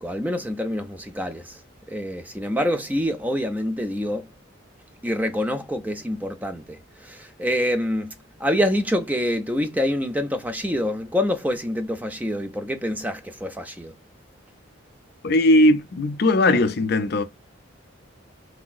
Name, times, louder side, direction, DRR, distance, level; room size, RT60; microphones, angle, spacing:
voice 1, 0.0-1.6 1.9-4.2 5.0-8.1 8.4-13.9, equal, 10° right, 0.4 m, -26 dB
voice 2, 15.2-17.2, left 1 dB, 50° left, 0.5 m, -18 dB
3.2 x 2.9 x 2.2 m
head